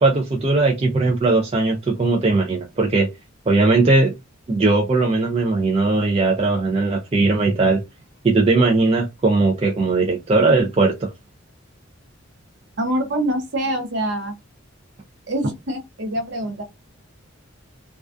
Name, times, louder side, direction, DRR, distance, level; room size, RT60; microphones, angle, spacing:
voice 1, 0.0-3.1 3.5-4.2 4.5-7.8 8.2-11.1, right 3 dB, 30° right, 0.3 m, -18 dB
voice 2, 12.8-14.3 15.3-16.6, right 1 dB, 55° right, 0.7 m, -25 dB
2.3 x 2.2 x 2.4 m
head